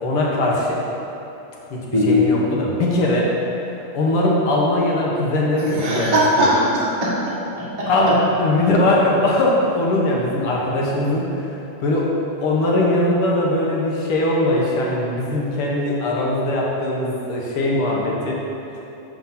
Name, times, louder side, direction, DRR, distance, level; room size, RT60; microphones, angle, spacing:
voice 1, 0.0-0.8 1.7-1.8 2.1-3.3 3.9-6.5 7.9-8.1 8.4-11.5 11.8-12.1 12.4-18.4, left 1 dB, 60° left, -3 dB, 1.7 m, -20 dB
voice 2, 1.9-2.3 5.7-8.2, equal, 25° right, -7 dB, 0.7 m, -20 dB
7.5 x 5.9 x 5.7 m, 3.0 s
omnidirectional pair, 3.4 m